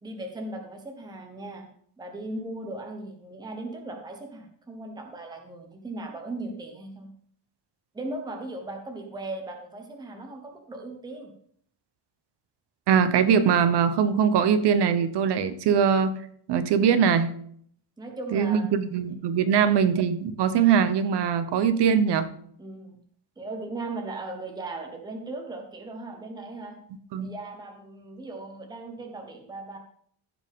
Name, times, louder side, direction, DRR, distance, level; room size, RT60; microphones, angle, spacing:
voice 1, 0.0-1.7 2.0-7.1 7.9-11.3 18.0-18.7 19.4-19.7 22.6-23.0 23.4-26.7 27.2-29.8, right 2 dB, 10° right, 3 dB, 0.9 m, -38 dB
voice 2, 12.9-16.1 16.5-17.3 18.3-22.3 27.1-27.3, right 7 dB, 55° right, 12 dB, 0.9 m, -22 dB
15.0 x 5.1 x 3.6 m, 0.62 s
cardioid pair, 180°, 48 cm